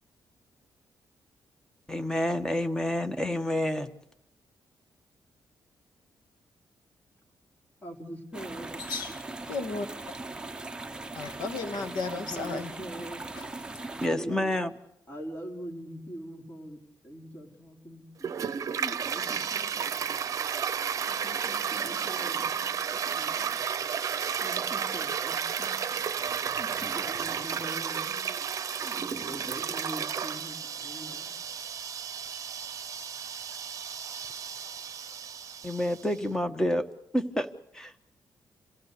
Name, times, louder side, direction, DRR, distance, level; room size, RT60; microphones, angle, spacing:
voice 1, 1.9-3.9 14.0-14.7 35.6-36.9 37.1-37.5 37.7-37.9, left 1 dB, 10° left, 1.4 m, -28 dB
voice 2, 7.8-8.7 12.1-13.2 14.0-14.5 15.1-18.4 18.7-20.2 21.1-23.7 24.4-26.0 26.6-28.2 28.8-31.3, equal, 25° left, 4.3 m, -43 dB
sound 1, 8.3-14.1, right 2 dB, 10° right, 0.8 m, -40 dB
voice 3, 8.9-9.2 9.5-9.9 11.2-12.7 13.4-13.5, left 4 dB, 90° left, 1.9 m, -34 dB
Toilet flush, 18.2-36.1, right 7 dB, 50° right, 0.8 m, -33 dB
27.5 x 17.5 x 6.8 m
cardioid pair, 115°, 7 cm